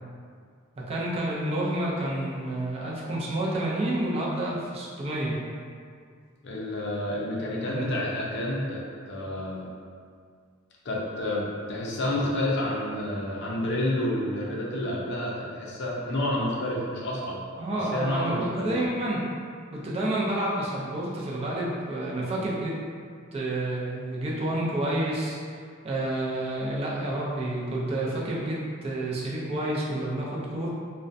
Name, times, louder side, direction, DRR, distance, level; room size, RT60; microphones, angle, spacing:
voice 1, 0.8-5.3 7.7-7.9 17.6-19.2 19.7-22.7 23.3-25.4 25.8-30.7, right 1 dB, 30° right, -5 dB, 0.4 m, -29 dB
voice 2, 6.4-8.8 9.1-9.7 10.8-17.4 17.9-18.7, left 1 dB, 55° left, -4 dB, 0.5 m, -29 dB
2.4 x 2.1 x 2.5 m, 2.1 s
head